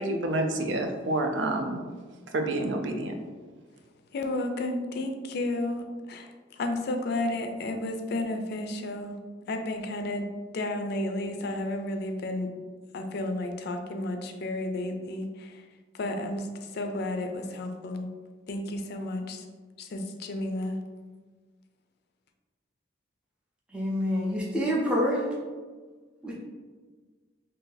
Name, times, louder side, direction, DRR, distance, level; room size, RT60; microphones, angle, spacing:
voice 1, 0.0-1.8 2.3-3.2, right 2 dB, 70° right, 5 dB, 0.4 m, -28 dB
voice 2, 4.1-6.3 6.6-9.2 9.5-10.2 10.5-12.5 12.9-15.6 15.9-16.5 16.7-18.1 18.5-19.4 19.8-20.8, left 2 dB, 60° left, 5 dB, 0.4 m, -32 dB
voice 3, 23.7-25.3 26.2-26.3, equal, 5° right, -5 dB, 0.5 m, -27 dB
2.7 x 2.6 x 3.8 m, 1.4 s
head